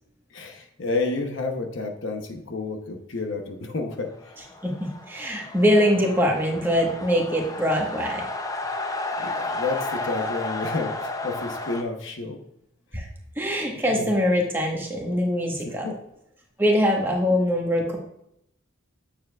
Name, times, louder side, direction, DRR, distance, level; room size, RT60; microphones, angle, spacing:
voice 1, 0.3-4.3 9.2-12.4 13.9-14.1 15.6-16.0, left 3 dB, 60° left, 4 dB, 0.8 m, -30 dB
sound 1, 4.1-11.8, left 2 dB, 15° left, 0.5 m, -32 dB
voice 2, 4.6-8.2 12.9-13.0 13.4-15.9 16.6-18.0, equal, 10° right, -1 dB, 1.3 m, -23 dB
8.7 x 7.1 x 2.3 m, 0.77 s
head